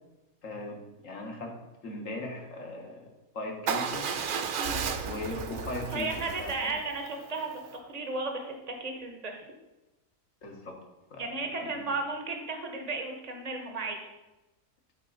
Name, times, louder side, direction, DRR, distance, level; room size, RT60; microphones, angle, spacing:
voice 1, 0.4-1.5 1.8-3.1 3.3-4.1 5.0-6.7 10.4-10.7 11.1-11.8, left 2 dB, 60° left, 1 dB, 1.8 m, -39 dB
Motorcycle / Engine starting / Idling, 3.7-7.8, right 6 dB, 85° right, 0.4 m, -34 dB
voice 2, 5.9-7.5 7.8-9.4 11.2-14.0, right 3 dB, 30° right, 3 dB, 1.0 m, -34 dB
12.0 x 4.5 x 4.0 m, 1.1 s
omnidirectional pair, 1.6 m